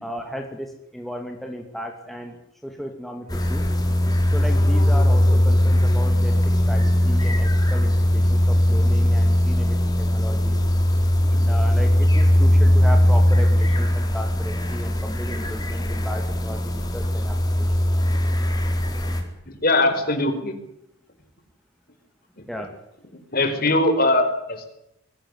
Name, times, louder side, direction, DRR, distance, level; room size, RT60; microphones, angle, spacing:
voice 1, 0.0-2.4 2.6-3.6 4.3-10.7 11.5-17.7 22.5-22.7, equal, ahead, 2 dB, 2.6 m, -35 dB
sound 1, 3.3-19.2, left 1 dB, 20° left, 4.4 m, -19 dB
voice 2, 19.5-20.5 22.4-22.5 23.1-24.6, left 2 dB, 45° left, 6 dB, 4.9 m, -22 dB
23.0 x 17.0 x 9.9 m, 0.82 s
head